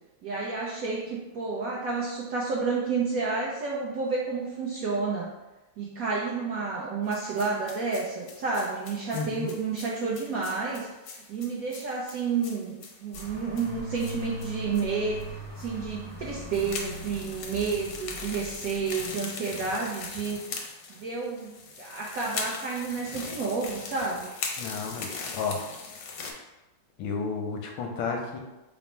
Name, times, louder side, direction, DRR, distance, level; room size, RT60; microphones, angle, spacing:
voice 1, 0.2-5.3 5.8-10.9 11.3-15.2 15.6-20.4 20.9-24.3, right 4 dB, 75° right, -5 dB, 0.8 m, -30 dB
sound 1, 7.1-14.9 15.2-15.3 15.6-15.7 16.3-26.3, left 4 dB, 70° left, 0.8 m, -40 dB
voice 2, 9.1-9.5 24.6-25.6 27.0-28.4, left 4 dB, 85° left, 2 dB, 1.4 m, -32 dB
sound 2, 13.1-19.1, equal, 30° left, 0.4 m, -41 dB
4.1 x 2.0 x 4.3 m, 1.1 s
omnidirectional pair, 2.1 m